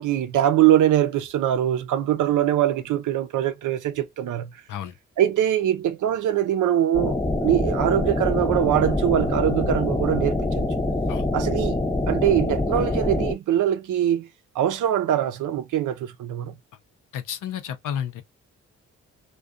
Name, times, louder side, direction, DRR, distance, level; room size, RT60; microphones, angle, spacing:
voice 1, 0.0-4.5 5.2-10.7 11.3-14.3 14.6-16.5, right 11 dB, 70° right, 0.6 m, -23 dB
sound 1, 6.9-13.3, left 2 dB, 10° left, 0.6 m, -25 dB
voice 2, 17.1-18.2, left 9 dB, 75° left, 0.7 m, -31 dB
2.5 x 2.3 x 2.4 m
supercardioid pair, 60°, 31 cm